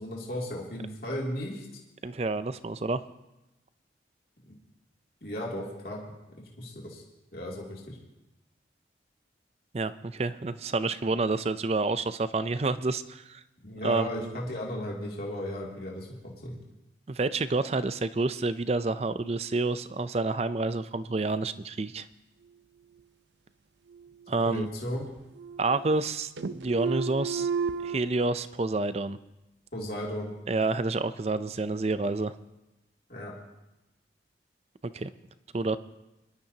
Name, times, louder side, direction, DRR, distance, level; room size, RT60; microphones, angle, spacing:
voice 1, 0.0-1.7 4.5-4.6 5.2-6.0 6.6-7.0 7.3-8.0 13.6-16.6 24.3-25.0 29.7-30.3 33.1-33.3, equal, 55° left, -3 dB, 2.7 m, -35 dB
voice 2, 2.0-3.0 9.7-13.4 13.8-14.3 17.1-22.1 24.3-24.7 25.6-27.5 27.8-29.2 30.5-32.3 34.8-35.1 35.5-35.8, right 3 dB, 35° right, 13 dB, 0.5 m, -29 dB
sound 1, 23.9-24.9 25.2-26.1 26.4-28.0, right 5 dB, 80° right, 0.6 m, -33 dB
23.0 x 12.0 x 2.8 m, 0.96 s
head